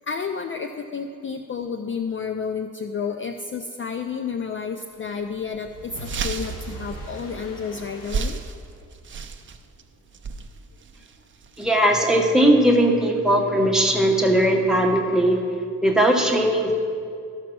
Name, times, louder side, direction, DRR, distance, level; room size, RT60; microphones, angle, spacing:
voice 1, 0.1-8.4, left 6 dB, 40° left, 6 dB, 0.4 m, -31 dB
sound 1, 4.9-5.1 5.5-5.6 5.8-12.9, right 5 dB, 35° right, 0.5 m, -34 dB
sound 2, 5.2-9.0, right 2 dB, 80° left, 2.5 m, -39 dB
voice 2, 11.6-15.4 15.8-16.7, right 1 dB, ahead, 0 dB, 1.0 m, -19 dB
13.0 x 6.0 x 6.1 m, 2.3 s
wide cardioid pair, 145°, 34 cm